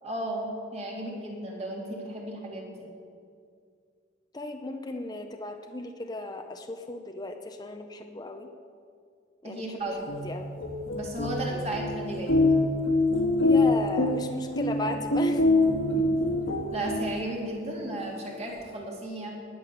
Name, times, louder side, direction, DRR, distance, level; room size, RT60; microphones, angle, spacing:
voice 1, 0.0-2.9 9.4-10.0 10.9-12.4 16.0-16.3 16.7-19.3, right 1 dB, 35° right, -2 dB, 3.0 m, -34 dB
voice 2, 4.3-8.5 9.4-10.5 11.5-11.8 13.4-15.4, left 2 dB, 20° left, 4 dB, 0.7 m, -36 dB
sound 1, 9.9-17.5, left 2 dB, 85° left, 1.8 m, -25 dB
20.0 x 8.6 x 7.0 m, 2.3 s
head